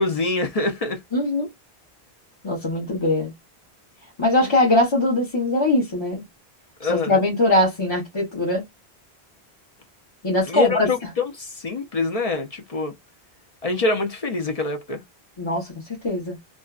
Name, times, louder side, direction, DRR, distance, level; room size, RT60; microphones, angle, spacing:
voice 1, 0.0-1.0 4.4-4.5 6.8-7.2 10.5-12.9 13.6-15.0, left 3 dB, 45° left, 0.5 m, -25 dB
voice 2, 1.1-1.5 2.4-3.3 4.2-6.2 6.8-8.6 10.2-10.9 15.4-16.4, left 2 dB, 30° left, 0.9 m, -21 dB
2.5 x 2.2 x 2.2 m
omnidirectional pair, 1.1 m